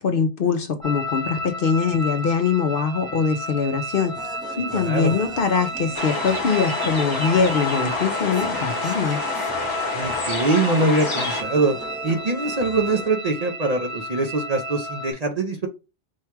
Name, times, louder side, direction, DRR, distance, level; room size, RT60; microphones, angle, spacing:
voice 1, 0.0-4.1 4.6-9.2, left 5 dB, 60° left, 0.7 m, -22 dB
sound 1, 0.8-15.1, equal, 65° right, 3.0 m, -33 dB
sound 2, 3.9-13.1, right 1 dB, 5° right, 0.6 m, -41 dB
voice 2, 4.7-5.1 9.9-11.8 12.0-15.7, right 2 dB, 45° right, 0.6 m, -23 dB
sound 3, 5.9-11.4, left 3 dB, 30° left, 1.0 m, -27 dB
4.6 x 2.3 x 4.4 m
omnidirectional pair, 1.2 m